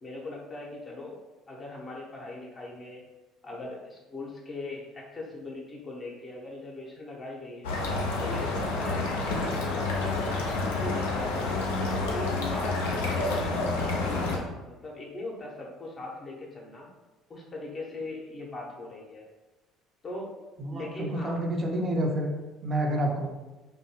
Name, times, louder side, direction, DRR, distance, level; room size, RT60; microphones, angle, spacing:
voice 1, 0.0-1.2 1.5-3.0 3.4-7.7 8.2-11.5 11.9-13.6 13.8-16.9 17.3-19.2 20.0-20.3 20.7-21.4, left 2 dB, 35° left, -3 dB, 0.6 m, -40 dB
sound 1, 7.6-14.4, left 3 dB, 80° left, 0.4 m, -29 dB
voice 2, 20.6-22.3 22.6-23.3, right 1 dB, 35° right, 1 dB, 0.6 m, -28 dB
2.6 x 2.2 x 2.8 m, 1.1 s
hypercardioid pair, 60°, 0 cm